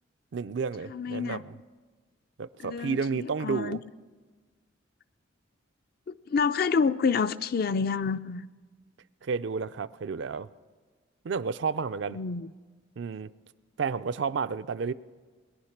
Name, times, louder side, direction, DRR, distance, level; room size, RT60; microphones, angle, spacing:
voice 1, 0.3-1.6 2.4-3.8 9.2-10.5 11.2-12.2 13.0-13.3 13.8-14.9, right 5 dB, 60° right, 0.4 m, -31 dB
voice 2, 0.9-1.4 2.6-3.8 6.1-8.5 12.1-12.5, left 5 dB, 50° left, 0.4 m, -28 dB
21.5 x 10.5 x 5.8 m
head